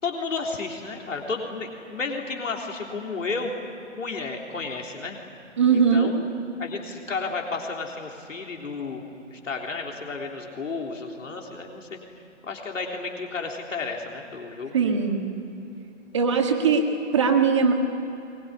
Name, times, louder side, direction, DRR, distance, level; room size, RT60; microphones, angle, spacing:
voice 1, 0.0-3.5 4.0-5.2 5.9-6.1 6.6-9.0 9.3-12.0 12.4-14.8, left 4 dB, 85° left, 1 dB, 3.7 m, -32 dB
voice 2, 5.6-6.1 14.7-15.2 16.1-17.7, right 5 dB, 25° right, 3 dB, 1.8 m, -20 dB
23.0 x 21.5 x 9.8 m, 2.9 s
hypercardioid pair, 175°, 37 cm